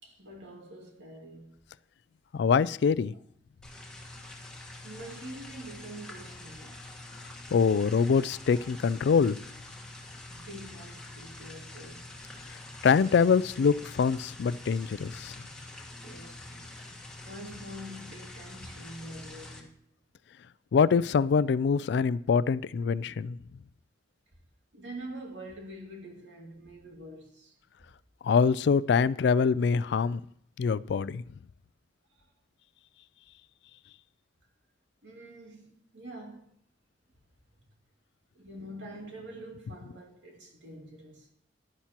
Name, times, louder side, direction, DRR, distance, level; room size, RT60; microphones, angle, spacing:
voice 1, 0.0-1.6 4.8-6.9 10.3-12.1 16.0-16.7 17.2-19.7 24.7-27.5 32.2-32.3 35.0-36.5 38.3-41.3, right 1 dB, 85° right, 2.4 m, -45 dB
voice 2, 2.3-3.1 7.5-9.4 12.8-15.3 20.7-23.4 28.2-30.2 30.6-31.2, left 6 dB, 65° left, 0.3 m, -24 dB
sound 1, 3.6-19.6, left 2 dB, 5° left, 1.4 m, -46 dB
11.5 x 10.0 x 2.9 m
head